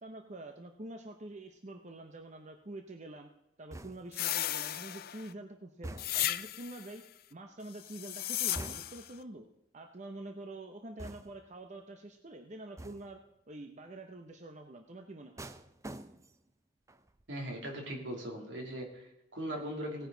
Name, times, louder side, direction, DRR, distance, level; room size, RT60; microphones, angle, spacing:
voice 1, 0.0-3.3 3.6-7.0 7.3-9.5 9.7-13.2 13.5-15.5, right 2 dB, 40° right, 5 dB, 0.9 m, -46 dB
sound 1, 3.7-4.3 5.8-6.4 8.6-9.2 11.0-11.6 12.8-13.2 15.4-16.5 16.9-17.2, right 1 dB, 15° right, 0.5 m, -46 dB
sound 2, 4.1-5.3 6.0-6.9 7.8-9.1, left 13 dB, 55° left, 0.5 m, -35 dB
voice 2, 17.3-20.1, equal, 80° right, 1 dB, 2.9 m, -39 dB
17.5 x 9.5 x 3.9 m, 0.85 s
head